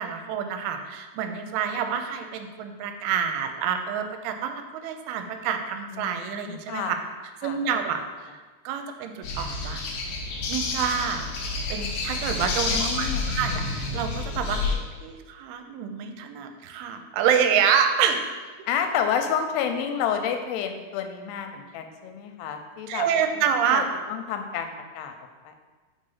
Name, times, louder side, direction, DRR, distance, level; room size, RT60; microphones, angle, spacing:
voice 1, 0.0-7.0 7.4-8.0 8.7-9.8 10.5-11.2 11.7-14.7 15.0-18.3 22.9-23.8, right 7 dB, 80° right, 6 dB, 2.4 m, -27 dB
voice 2, 5.9-7.0 7.4-7.6 12.7-13.3 18.7-23.1 23.7-25.1 25.5-25.6, left 8 dB, 85° left, 6 dB, 2.7 m, -30 dB
sound 1, 9.2-14.7, left 3 dB, 70° left, 1.9 m, -29 dB
5.3 x 4.1 x 5.5 m, 1.3 s
omnidirectional pair, 4.7 m